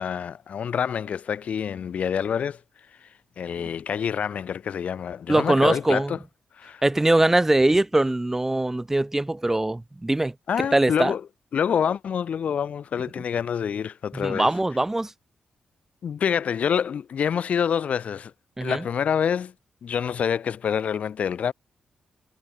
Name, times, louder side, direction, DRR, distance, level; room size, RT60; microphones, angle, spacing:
voice 1, 0.0-2.6 3.4-6.2 6.6-6.8 10.5-11.2 11.5-14.5 16.0-18.3 18.6-19.5 19.8-21.5, left 7 dB, 65° left, 2.8 m, -26 dB
voice 2, 5.3-6.1 6.8-10.3 10.7-11.1 14.1-15.1 18.6-18.8, right 2 dB, 15° right, 4.2 m, -22 dB
cardioid pair, 75°, 2 cm